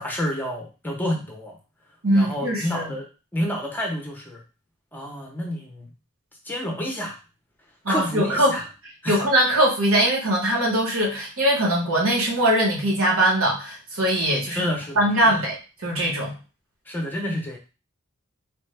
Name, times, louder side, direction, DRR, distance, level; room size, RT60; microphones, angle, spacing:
voice 1, 0.0-1.6 2.1-4.4 4.9-5.9 6.4-7.2 7.9-8.6 9.0-9.2 14.5-15.4 16.9-17.6, equal, 10° left, 0 dB, 0.6 m, -29 dB
voice 2, 2.0-2.9 7.8-8.6 9.1-14.7 14.9-15.6 15.8-16.4, right 1 dB, 65° right, -2 dB, 1.2 m, -21 dB
3.4 x 2.2 x 3.2 m, 0.32 s
head